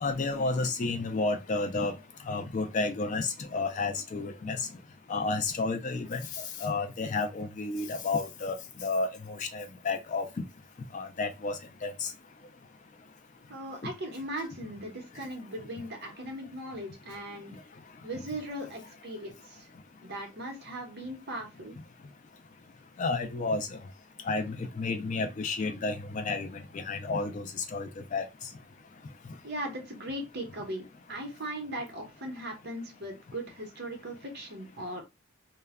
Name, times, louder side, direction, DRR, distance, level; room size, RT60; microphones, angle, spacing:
voice 1, 0.0-1.9 2.3-4.6 5.1-6.2 6.6-10.3 10.9-12.1 23.0-23.8 24.3-28.2, left 3 dB, 35° left, 0.3 m, -31 dB
voice 2, 13.5-17.5 18.0-19.7 20.0-21.8 29.4-35.0, right 1 dB, 50° right, 0.8 m, -38 dB
2.2 x 2.1 x 3.4 m
head